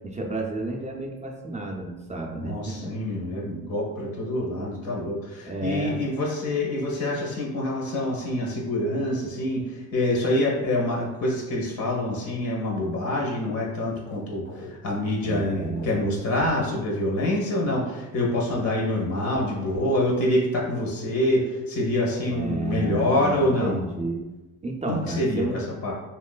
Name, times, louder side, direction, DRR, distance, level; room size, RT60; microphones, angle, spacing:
voice 1, 0.0-2.9 5.5-6.0 15.2-16.0 22.3-24.3 24.6-25.6, right 2 dB, 20° right, 0 dB, 0.4 m, -31 dB
voice 2, 2.3-23.8 24.9-25.9, left 1 dB, 85° left, -2 dB, 1.3 m, -26 dB
sound 1, 13.9-14.7 15.6-15.9 16.4-16.7 17.2-17.3 17.6-17.8 18.3-19.9 22.1-22.3 22.7-23.4, left 2 dB, 35° left, 0.6 m, -40 dB
3.0 x 3.0 x 2.2 m, 1.1 s
cardioid pair, 100°, 34 cm